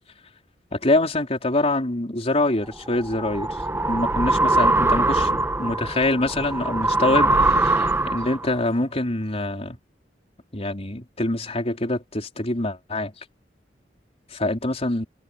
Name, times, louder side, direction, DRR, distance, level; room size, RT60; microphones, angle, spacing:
voice 1, 0.7-3.6 3.9-9.8 10.5-13.2 14.3-15.1, left 2 dB, 35° left, 4.2 m, -25 dB
sound 1, 2.7-8.5, right 2 dB, 15° right, 1.1 m, -22 dB
head